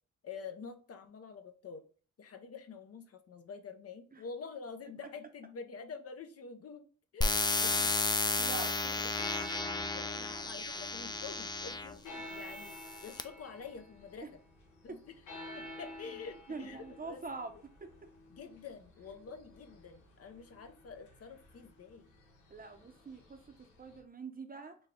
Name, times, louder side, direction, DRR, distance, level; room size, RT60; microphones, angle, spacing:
voice 1, 0.2-1.8 2.2-6.9 7.1-8.0 8.5-9.1 9.9-12.8 13.0-14.4 14.8-15.2 15.5-17.2 18.3-22.1, left 5 dB, 55° left, 7 dB, 0.7 m, -47 dB
sound 1, 7.2-11.9 12.6-13.2, left 3 dB, 15° left, 0.4 m, -33 dB
voice 2, 8.4-9.0 14.2-14.3 14.9-15.0 16.5-17.5 17.8-17.9 22.5-24.8, right 4 dB, 30° right, 7 dB, 0.7 m, -44 dB
sound 2, 9.1-24.0, left 1 dB, 90° left, 1.1 m, -50 dB
4.1 x 2.2 x 3.6 m, 0.41 s
cardioid pair, 70°, 30 cm